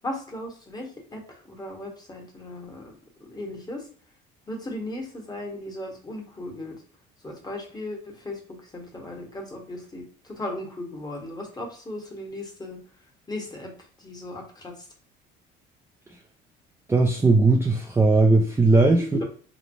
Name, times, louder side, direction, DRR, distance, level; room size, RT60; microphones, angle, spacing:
voice 1, 0.0-2.9 3.3-3.9 4.5-6.8 7.2-12.8 13.3-13.7 14.0-14.7 19.1-19.2, left 1 dB, 20° left, 0 dB, 1.0 m, -36 dB
voice 2, 16.9-19.0, right 3 dB, 10° right, 1 dB, 0.4 m, -18 dB
3.1 x 2.0 x 2.6 m, 0.43 s
supercardioid pair, 85°, 21 cm